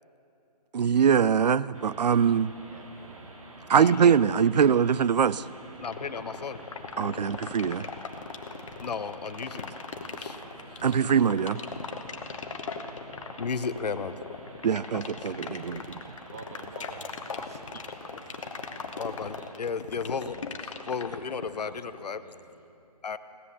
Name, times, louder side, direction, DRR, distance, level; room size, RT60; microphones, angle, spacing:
voice 1, 0.7-2.5 3.7-5.4 7.0-7.9 10.8-11.6 14.6-15.6, right 7 dB, 85° right, 19 dB, 0.4 m, -22 dB
sound 1, 1.7-19.5, right 2 dB, 55° right, 2.2 m, -48 dB
voice 2, 2.6-3.3 16.3-17.6 19.4-19.6 20.2-20.5 20.7-22.8, right 5 dB, 25° right, 7 dB, 0.6 m, -51 dB
voice 3, 3.8-4.1 5.8-6.6 8.8-9.7 10.2-10.4 11.6-11.8 13.4-14.1 17.3-17.8 18.1-18.2 19.0-20.4 20.9-22.2 23.0-23.2, left 5 dB, 75° left, 13 dB, 0.8 m, -34 dB
sound 2, 5.8-21.8, left 5 dB, 50° left, 1.0 m, -38 dB
16.5 x 10.5 x 7.0 m, 2.8 s
hypercardioid pair, 165°, 21 cm